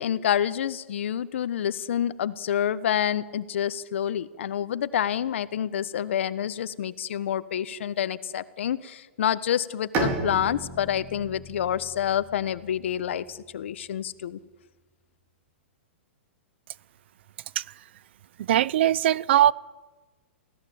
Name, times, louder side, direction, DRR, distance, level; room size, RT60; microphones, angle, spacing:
voice 1, 0.0-14.4, left 10 dB, 70° left, 1.2 m, -28 dB
Bowed string instrument, 9.9-13.6, right 2 dB, 30° right, 4.9 m, -33 dB
voice 2, 18.4-19.5, right 12 dB, 60° right, 0.7 m, -20 dB
23.5 x 17.0 x 8.7 m
hypercardioid pair, 150°, 7 cm